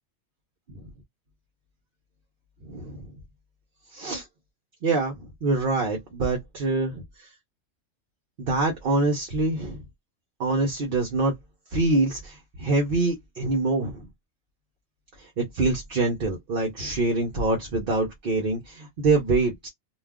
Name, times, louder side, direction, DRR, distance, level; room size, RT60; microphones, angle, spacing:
voice 1, 2.6-3.0 3.9-4.3 4.8-7.3 8.4-9.8 10.4-11.3 11.7-14.1 15.2-19.7, right 2 dB, 50° right, 0.8 m, -25 dB
2.3 x 2.3 x 3.5 m
omnidirectional pair, 1.3 m